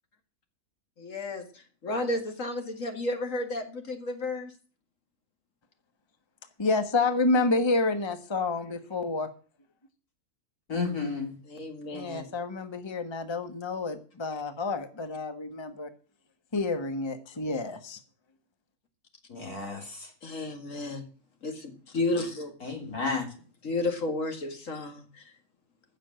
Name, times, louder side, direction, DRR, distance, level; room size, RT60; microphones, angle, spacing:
voice 1, 1.0-1.4 1.8-4.5 11.5-12.3 20.2-21.1 21.4-22.5 23.6-25.2, left 2 dB, 60° left, 2.5 m, -32 dB
voice 2, 6.6-9.3 11.9-15.9 16.5-18.0, left 3 dB, 20° left, 1.2 m, -29 dB
voice 3, 10.7-11.3 19.3-20.1 22.6-23.3, left 4 dB, 80° left, 3.9 m, -32 dB
15.0 x 6.6 x 7.7 m
omnidirectional pair, 1.5 m